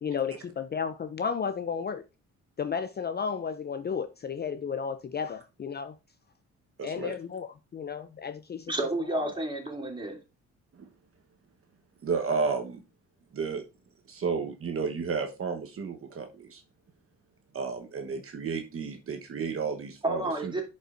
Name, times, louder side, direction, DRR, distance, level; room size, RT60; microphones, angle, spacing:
voice 1, 0.0-2.0 2.6-5.9 6.8-8.7 9.1-9.3, left 6 dB, 35° left, 0.5 m, -33 dB
voice 2, 6.8-7.1 10.8-10.9 12.0-12.8 13.3-13.6 14.1-16.6 17.5-20.6, right 5 dB, 45° right, 1.2 m, -32 dB
voice 3, 8.7-10.2 20.0-20.6, right 2 dB, 15° right, 2.9 m, -30 dB
10.5 x 5.5 x 2.6 m
cardioid pair, 90°, 30 cm